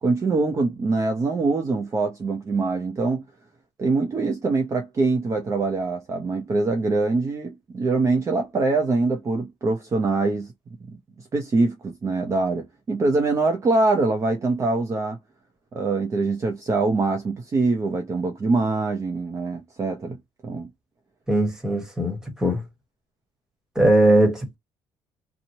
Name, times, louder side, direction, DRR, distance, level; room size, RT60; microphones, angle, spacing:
voice 1, 0.0-3.2 3.8-10.5 11.2-15.2 15.7-20.2 20.4-20.7, right 3 dB, 30° right, 0.6 m, -24 dB
voice 2, 21.3-22.6 23.7-24.6, right 1 dB, 5° right, 1.2 m, -20 dB
2.9 x 2.1 x 2.7 m
cardioid pair, 135°, 10 cm